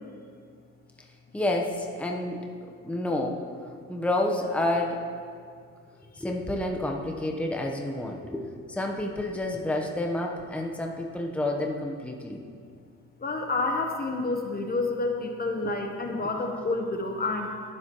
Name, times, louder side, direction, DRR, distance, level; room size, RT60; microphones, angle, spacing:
voice 1, 1.3-2.5 2.8-3.4 3.9-5.0 6.2-12.4, left 1 dB, 5° left, 1 dB, 1.0 m, -29 dB
voice 2, 13.2-17.6, left 2 dB, 30° left, 3 dB, 1.1 m, -29 dB
21.5 x 7.7 x 3.1 m, 2.2 s
cardioid pair, 90°, 30 cm